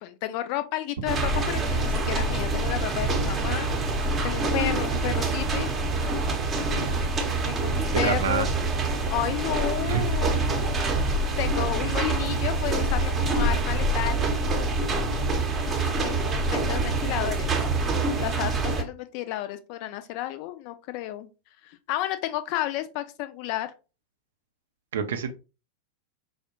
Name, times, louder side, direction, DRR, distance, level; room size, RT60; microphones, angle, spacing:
voice 1, 0.0-3.7 4.2-5.7 7.5-8.5 9.1-10.7 11.4-14.3 16.0-17.5 18.2-21.3 21.6-23.7, left 14 dB, 45° left, 0.4 m, -32 dB
sound 1, 1.1-18.8, right 2 dB, 20° right, 0.7 m, -26 dB
voice 2, 6.7-7.0 8.0-8.5 9.9-10.0 24.9-25.3, right 7 dB, 60° right, 0.5 m, -27 dB
4.7 x 2.1 x 2.8 m
figure-of-eight pair, 90°, 0 cm